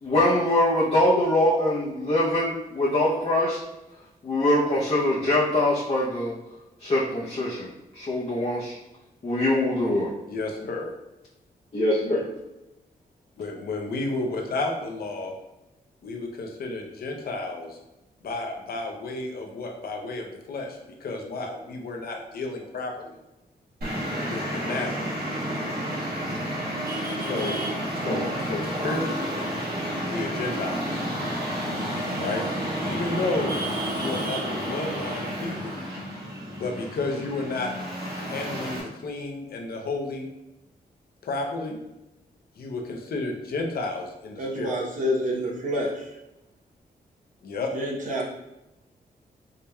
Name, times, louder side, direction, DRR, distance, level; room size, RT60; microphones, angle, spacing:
voice 1, 0.0-3.6 4.2-6.4 6.8-7.7 7.9-8.8 9.2-10.1 11.7-12.3, left 1 dB, 40° left, -6 dB, 0.7 m, -23 dB
voice 2, 10.3-10.9 13.4-15.3 16.0-17.8 18.2-23.2 24.3-25.2 27.2-27.6 27.9-29.4 30.1-31.0 32.2-32.4 32.8-33.5 33.8-35.9 36.6-37.7 38.2-40.3 41.2-41.8 42.6-44.7 47.4-47.7, left 2 dB, 75° left, 1 dB, 0.7 m, -32 dB
Traffic noise roadway noise, 23.8-38.8, equal, 85° right, 1.4 m, -30 dB
voice 3, 44.4-46.1 47.7-48.3, equal, 55° right, -3 dB, 0.8 m, -28 dB
4.9 x 2.8 x 2.3 m, 0.96 s
wide cardioid pair, 125°, 16 cm